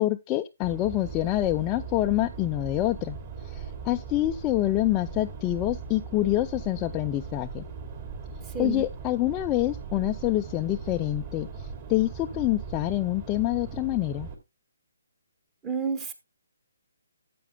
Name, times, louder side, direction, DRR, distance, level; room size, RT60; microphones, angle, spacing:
voice 1, 0.0-3.2 3.4-7.7 8.6-14.3, left 16 dB, 15° left, 7 dB, 0.4 m, -26 dB
sound 1, 0.6-14.4, right 5 dB, 35° right, 3.0 m, -39 dB
voice 2, 8.5-8.9 15.6-16.1, right 6 dB, 15° right, 10 dB, 1.3 m, -30 dB
13.0 x 8.5 x 2.2 m, 0.22 s
hypercardioid pair, 160°, 0 cm